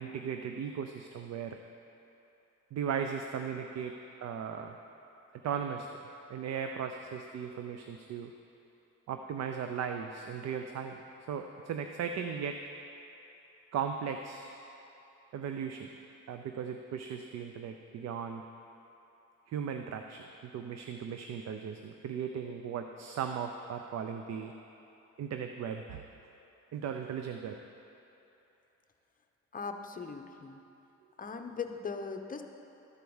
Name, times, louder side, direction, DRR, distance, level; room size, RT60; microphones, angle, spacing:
voice 1, 0.0-1.6 2.7-3.9 4.2-4.8 5.4-5.9 6.3-8.3 9.1-11.0 11.3-12.6 13.7-14.5 15.3-15.9 16.3-18.4 19.5-24.5 25.2-26.0 26.7-27.6, right 7 dB, 60° right, 5 dB, 0.6 m, -37 dB
voice 2, 29.5-30.6 31.2-32.4, left 5 dB, 30° left, 5 dB, 0.8 m, -39 dB
13.0 x 4.6 x 7.1 m, 3.0 s
cardioid pair, 90°, 30 cm